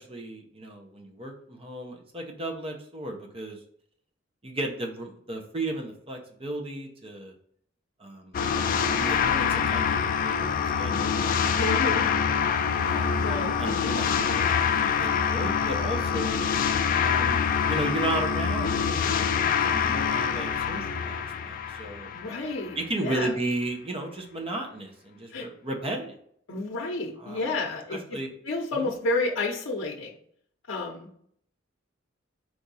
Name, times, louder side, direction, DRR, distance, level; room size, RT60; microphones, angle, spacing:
voice 1, 0.0-3.6 4.4-7.3 8.0-11.1 11.5-12.0 12.8-13.2 13.6-16.4 17.0-22.1 22.8-26.2 27.2-27.5 27.9-28.3 28.7-28.9, right 2 dB, 30° right, 2 dB, 0.8 m, -35 dB
sound 1, 8.3-22.7, left 7 dB, 45° left, 0.3 m, -25 dB
voice 2, 11.6-12.0 13.2-13.5 22.1-23.3 25.3-25.5 26.5-28.2 28.5-30.2 30.7-31.1, left 3 dB, 75° left, 0 dB, 0.7 m, -30 dB
4.7 x 2.6 x 4.0 m, 0.65 s
head